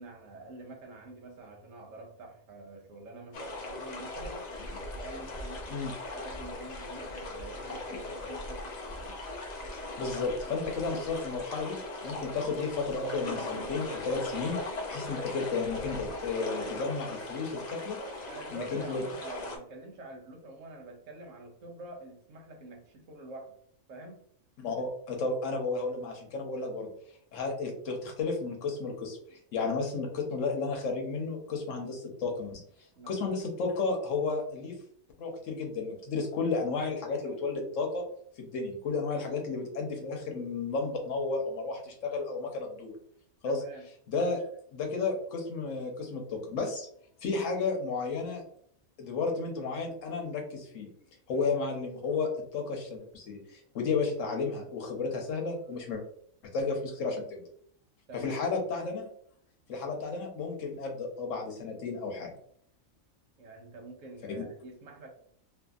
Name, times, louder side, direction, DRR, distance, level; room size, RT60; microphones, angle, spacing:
voice 1, 0.0-4.5 4.9-8.7 18.2-23.5 23.9-24.2 33.0-33.2 43.4-43.9 51.3-51.6 58.1-58.5 63.4-65.1, right 2 dB, 75° right, 2 dB, 1.0 m, -47 dB
sound 1, 3.3-19.6, left 2 dB, 55° left, 0.5 m, -39 dB
voice 2, 10.0-11.8 12.0-14.6 14.9-18.0 18.5-19.0 24.6-26.9 27.3-32.6 33.1-34.8 35.2-38.1 38.4-43.0 43.4-43.6 44.1-44.4 44.7-46.9 47.2-48.4 49.0-50.9 51.3-56.0 56.4-57.4 58.1-59.1 59.7-62.3 64.4-64.5, left 4 dB, 70° left, 2 dB, 1.0 m, -33 dB
2.7 x 2.6 x 2.3 m, 0.63 s
omnidirectional pair, 1.4 m